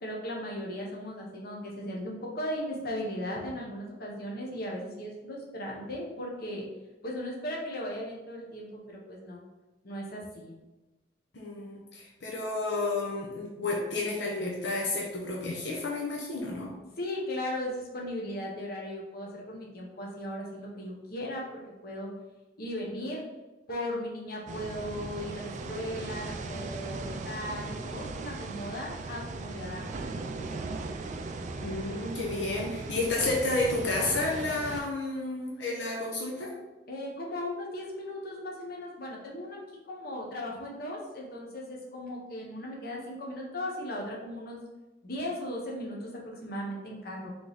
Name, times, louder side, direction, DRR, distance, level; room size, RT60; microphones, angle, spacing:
voice 1, 0.0-6.7 7.0-9.4 9.8-10.5 16.9-22.1 22.6-23.2 23.7-30.3 30.5-30.7 36.9-39.6 39.9-44.6 45.0-47.3, left 1 dB, 60° left, -2 dB, 0.9 m, -37 dB
voice 2, 11.3-16.7 31.6-36.5, left 2 dB, 85° left, -2 dB, 0.7 m, -31 dB
sound 1, 24.5-34.8, right 3 dB, 45° right, 0.3 m, -38 dB
3.5 x 3.0 x 3.9 m, 1.1 s
head